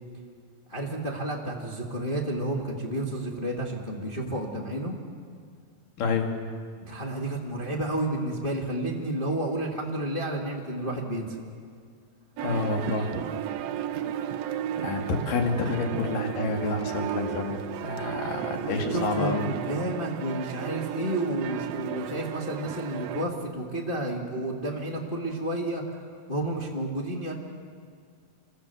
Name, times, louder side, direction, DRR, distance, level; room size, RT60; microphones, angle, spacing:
voice 1, 0.7-4.9 6.8-11.4 18.5-25.8 26.3-27.3, right 1 dB, 20° left, 0 dB, 1.7 m, -31 dB
voice 2, 6.0-6.3 12.4-13.2 14.8-19.5, left 3 dB, 70° left, 3 dB, 3.8 m, -29 dB
sound 1, 12.4-23.3, right 10 dB, 85° right, 1.4 m, -34 dB
28.5 x 24.0 x 7.0 m, 2.1 s
omnidirectional pair, 4.1 m